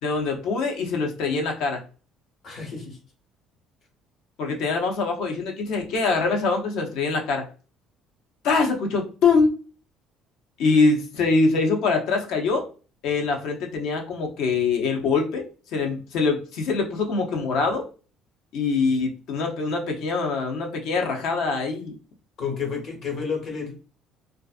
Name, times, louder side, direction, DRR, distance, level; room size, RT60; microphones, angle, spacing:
voice 1, 0.0-1.8 4.4-7.5 8.4-9.5 10.6-12.7 13.0-17.8 18.5-21.9, left 4 dB, 75° left, 2 dB, 0.7 m, -24 dB
voice 2, 2.4-3.0 22.4-23.7, left 6 dB, 55° left, 1 dB, 1.2 m, -30 dB
2.4 x 2.4 x 2.4 m, 0.36 s
supercardioid pair, 85°, 0 cm